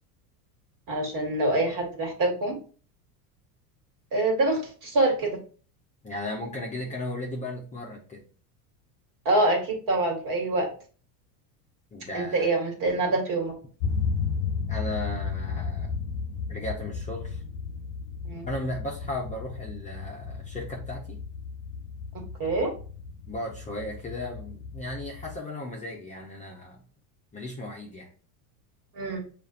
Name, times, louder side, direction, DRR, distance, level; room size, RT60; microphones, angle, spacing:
voice 1, 0.9-2.6 4.1-5.4 9.2-10.7 12.1-13.5 18.2-18.5 22.4-22.7 28.9-29.2, right 2 dB, 45° right, 2 dB, 1.7 m, -25 dB
voice 2, 6.0-8.2 11.9-12.5 14.7-16.0 16.5-17.4 18.4-21.2 23.3-26.8 27.3-28.1, left 1 dB, 15° left, -2 dB, 0.6 m, -36 dB
sound 1, 13.8-25.4, left 5 dB, 60° left, 0.5 m, -34 dB
6.5 x 2.5 x 2.5 m, 0.39 s
supercardioid pair, 125°, 45 cm